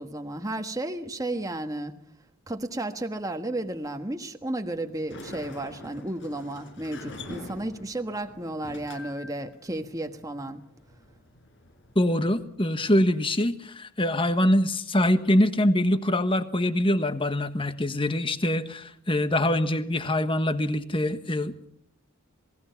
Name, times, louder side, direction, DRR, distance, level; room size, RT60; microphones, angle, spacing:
voice 1, 0.0-1.9 2.5-10.6, right 1 dB, 15° right, 1.4 m, -33 dB
Sliding door, 4.9-12.4, left 2 dB, 55° left, 5.7 m, -46 dB
voice 2, 11.9-21.7, left 1 dB, 25° left, 1.4 m, -24 dB
27.0 x 20.0 x 5.8 m
head